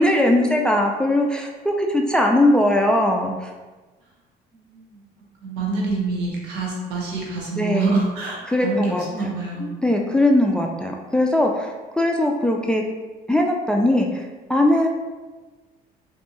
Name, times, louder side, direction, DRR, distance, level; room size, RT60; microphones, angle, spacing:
voice 1, 0.0-3.3 7.6-7.9 8.5-9.4 9.8-12.8 13.3-14.2 14.5-14.9, left 1 dB, 5° left, 1 dB, 0.3 m, -20 dB
voice 2, 4.5-5.0 5.4-9.7, right 3 dB, 85° right, -2 dB, 1.0 m, -27 dB
3.2 x 2.6 x 3.0 m, 1.3 s
cardioid pair, 110°, 17 cm